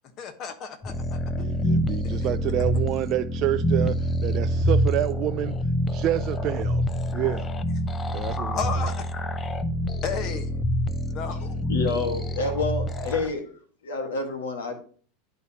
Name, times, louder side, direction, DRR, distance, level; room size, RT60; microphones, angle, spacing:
voice 1, 0.2-1.5 2.0-2.3 8.5-9.1 10.0-10.6 11.0-11.5, left 6 dB, 45° left, 1.2 m, -34 dB
sound 1, 0.8-13.3, equal, 20° left, 0.5 m, -26 dB
voice 2, 1.3-6.9 7.1-7.5 8.1-8.7, right 14 dB, 45° right, 0.3 m, -28 dB
voice 3, 11.7-13.5 13.8-14.8, left 3 dB, 90° left, 1.7 m, -28 dB
10.5 x 4.1 x 2.9 m
hypercardioid pair, 105°, 0 cm